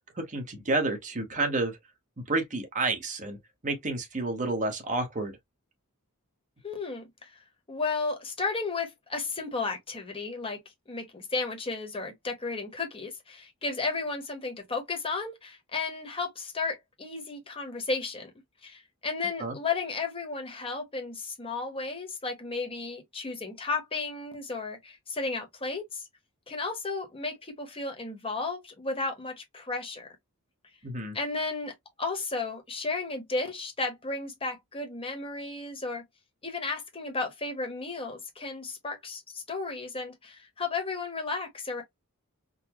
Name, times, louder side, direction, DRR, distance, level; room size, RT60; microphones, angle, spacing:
voice 1, 0.1-1.8 2.3-3.4 3.6-5.3 19.4-19.6 30.8-31.2, right 2 dB, 35° right, 1.0 m, -30 dB
voice 2, 6.6-7.4 7.7-10.6 10.9-18.3 18.6-26.1 26.5-30.1 31.1-36.0 36.4-41.8, left 3 dB, 25° left, 1.0 m, -33 dB
3.9 x 2.0 x 2.9 m
head